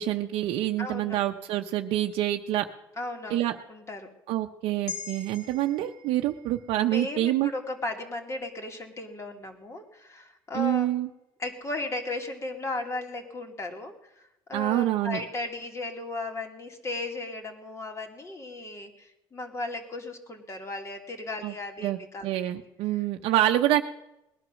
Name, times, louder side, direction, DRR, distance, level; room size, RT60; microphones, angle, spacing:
voice 1, 0.0-2.6 3.3-3.5 4.3-7.5 10.5-11.1 14.5-15.2 21.4-21.5 21.8-22.0 22.2-23.8, right 13 dB, 75° right, 4 dB, 0.8 m, -26 dB
voice 2, 0.8-1.2 3.0-3.4 3.7-4.1 5.5-5.6 6.9-10.9 11.4-22.3, left 2 dB, 30° left, 4 dB, 2.8 m, -36 dB
sound 1, 4.9-9.4 9.8-9.9, left 6 dB, 80° left, 2.7 m, -45 dB
20.0 x 11.0 x 6.3 m, 0.92 s
cardioid pair, 100°, 10 cm